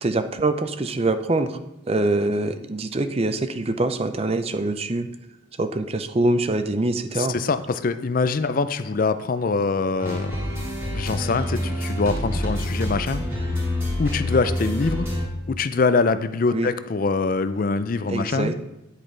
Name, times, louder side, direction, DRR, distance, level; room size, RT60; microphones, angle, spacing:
voice 1, 0.0-1.6 1.9-5.1 5.6-7.4 16.5-16.7 18.1-18.6, right 2 dB, 30° right, 10 dB, 0.5 m, -24 dB
voice 2, 7.1-10.3 10.9-13.2 14.0-15.1 15.5-18.5, left 4 dB, 45° left, 12 dB, 0.4 m, -24 dB
sound 1, 10.0-15.2, left 1 dB, 10° right, 3.1 m, -27 dB
10.5 x 8.6 x 3.3 m, 0.95 s
head